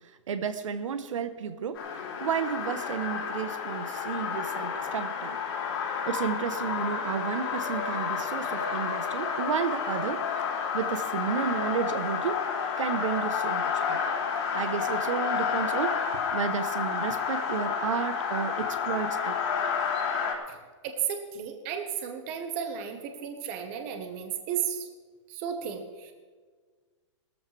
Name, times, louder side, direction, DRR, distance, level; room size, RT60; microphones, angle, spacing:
voice 1, 0.3-1.8 2.2-5.4 6.1-10.2 10.7-12.4 12.8-14.0 14.5-16.0 16.3-19.4, right 7 dB, 85° right, 10 dB, 1.2 m, -32 dB
sound 1, 1.8-20.3, left 6 dB, 50° left, 3.4 m, -30 dB
voice 2, 20.8-24.9 25.3-26.1, right 8 dB, 25° right, 5 dB, 1.4 m, -34 dB
19.0 x 14.0 x 3.5 m, 1.5 s
hypercardioid pair, 175°, 16 cm